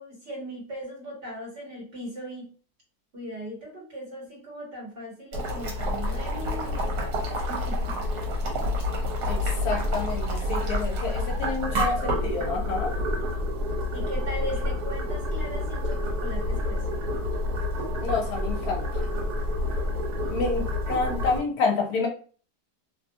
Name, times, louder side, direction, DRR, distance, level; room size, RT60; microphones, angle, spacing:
voice 1, 0.0-2.5 3.1-8.0 13.9-17.0, equal, 40° right, -3 dB, 1.1 m, -38 dB
Boiling, 5.3-21.4, left 1 dB, 70° right, 1.3 m, -28 dB
voice 2, 9.6-12.9 18.0-19.0 20.3-22.1, left 4 dB, 65° left, 2 dB, 1.1 m, -28 dB
2.9 x 2.0 x 2.6 m, 0.41 s
omnidirectional pair, 1.8 m